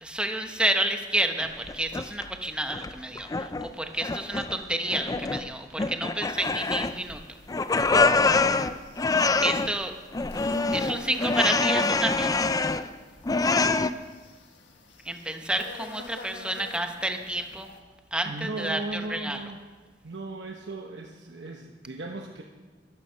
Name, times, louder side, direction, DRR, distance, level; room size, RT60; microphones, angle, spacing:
voice 1, 0.0-7.2 9.4-9.9 10.7-12.4 15.1-17.7 18.1-19.4, right 1 dB, 5° right, 5 dB, 1.0 m, -30 dB
sound 1, 1.4-2.3 2.7-3.7 4.0-4.6 4.9-5.5 5.8-7.2 7.5-9.7 10.1-12.9 13.2-13.9, left 3 dB, 20° left, 0.4 m, -25 dB
sound 2, 6.3-17.8, left 4 dB, 85° left, 1.5 m, -48 dB
voice 2, 18.3-19.6 20.0-22.4, right 2 dB, 70° right, 1 dB, 1.0 m, -37 dB
13.0 x 12.5 x 5.7 m, 1.4 s
head